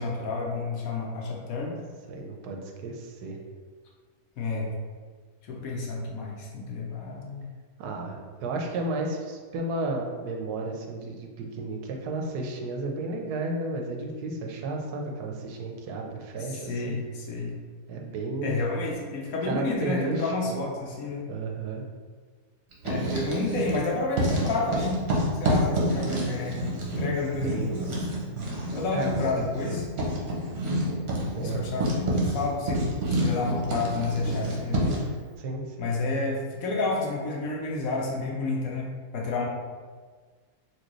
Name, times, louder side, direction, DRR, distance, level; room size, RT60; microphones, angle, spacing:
voice 1, 0.0-1.8 4.4-4.7 5.5-7.5 16.5-17.6 18.4-21.2 22.8-25.0 25.3-27.9 28.7-29.9 31.4-32.8 33.2-35.1 35.8-39.5, left 3 dB, 70° left, -2 dB, 1.1 m, -30 dB
voice 2, 2.1-3.4 7.8-17.0 17.9-18.6 19.4-20.6 21.3-21.8 27.4-27.8 28.9-29.4 31.2-31.6 35.4-35.9, right 2 dB, 85° right, 2 dB, 1.2 m, -33 dB
Writing, 22.7-23.8 24.1-35.1, right 1 dB, 50° right, 0.9 m, -28 dB
4.4 x 2.5 x 3.0 m, 1.5 s
omnidirectional pair, 1.6 m